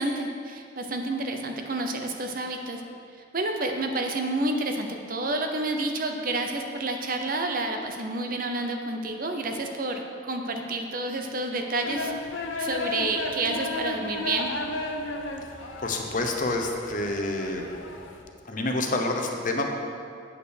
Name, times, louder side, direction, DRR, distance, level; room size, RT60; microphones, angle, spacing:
voice 1, 0.0-2.8 3.3-12.1 12.6-14.5, right 2 dB, 45° right, 4 dB, 0.7 m, -29 dB
sound 1, 11.8-18.2, left 2 dB, 85° left, 0.9 m, -34 dB
voice 2, 15.8-17.6 18.5-19.7, left 2 dB, 40° left, 3 dB, 0.8 m, -28 dB
8.3 x 5.6 x 6.4 m, 2.3 s
head